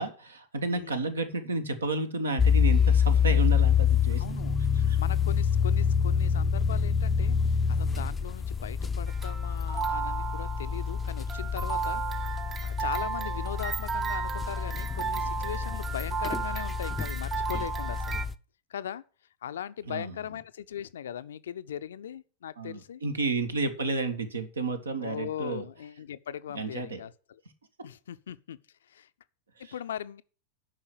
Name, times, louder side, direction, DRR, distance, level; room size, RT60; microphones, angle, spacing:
voice 1, 0.0-4.4 4.7-5.0 19.9-20.2 22.6-25.7 26.5-27.0 29.6-29.7, right 3 dB, 75° right, 1.4 m, -31 dB
voice 2, 0.7-1.1 4.1-4.6 5.0-12.3 12.6-18.2 18.7-19.0 19.4-23.0 25.0-27.4 27.8-28.6 28.9-29.1 29.6-30.2, left 9 dB, 65° left, 0.5 m, -39 dB
sound 1, 2.4-18.3, left 7 dB, 15° left, 0.5 m, -27 dB
sound 2, 9.1-18.3, right 7 dB, 20° right, 0.7 m, -34 dB
9.2 x 5.6 x 7.7 m
figure-of-eight pair, 90°, 0 cm